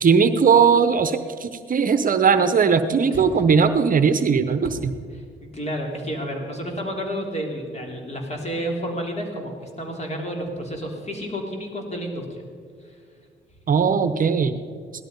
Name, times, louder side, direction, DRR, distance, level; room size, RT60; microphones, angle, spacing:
voice 1, 0.0-4.9 13.7-14.5, right 6 dB, 45° right, 10 dB, 0.9 m, -19 dB
voice 2, 5.4-12.4, equal, 35° left, 1 dB, 3.6 m, -30 dB
17.5 x 12.5 x 5.4 m, 2.1 s
cardioid pair, 90°, 20 cm